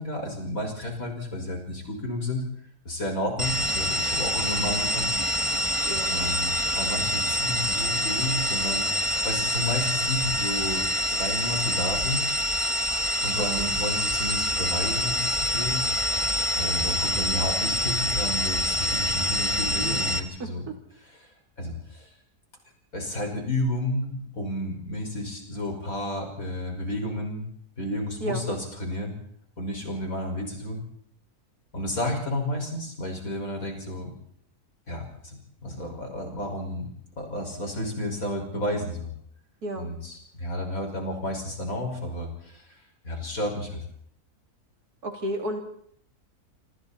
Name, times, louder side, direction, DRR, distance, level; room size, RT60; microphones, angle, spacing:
voice 1, 0.0-2.5 2.8-5.1 6.1-12.2 13.2-15.8 16.5-20.6 21.0-21.3 21.6-22.1 22.9-27.4 27.8-29.1 29.6-30.8 31.7-34.1 34.9-36.9 37.2-39.1 39.8-42.6 43.0-43.8, left 1 dB, 65° left, 2 dB, 6.2 m, -31 dB
sound 1, 3.4-20.2, equal, 20° right, 1.5 m, -26 dB
voice 2, 13.4-13.7 20.4-20.8 28.2-28.4 39.6-39.9 45.0-45.6, right 1 dB, 85° right, 3 dB, 3.9 m, -32 dB
27.0 x 27.0 x 4.4 m, 0.65 s
omnidirectional pair, 1.6 m